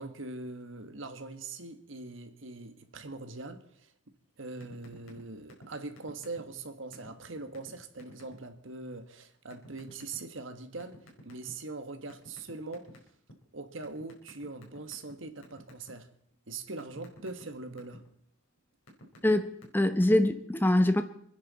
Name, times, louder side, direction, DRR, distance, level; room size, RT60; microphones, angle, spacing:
voice 1, 0.0-3.9 4.4-12.9 13.5-16.1 16.5-18.0, right 3 dB, 80° right, 1.5 m, -42 dB
sound 1, 4.6-5.2 5.5-5.7 6.0-6.6 6.9-7.1 7.5-7.7 8.0-8.3 9.5-10.2 10.8-11.7 12.1-13.3 13.8-15.1 15.4-15.9 16.3-18.0 18.6-19.3 19.6-20.0, equal, 90° left, 4.4 m, -51 dB
voice 2, 19.2-21.0, left 1 dB, 10° left, 0.8 m, -24 dB
26.5 x 10.0 x 4.2 m
head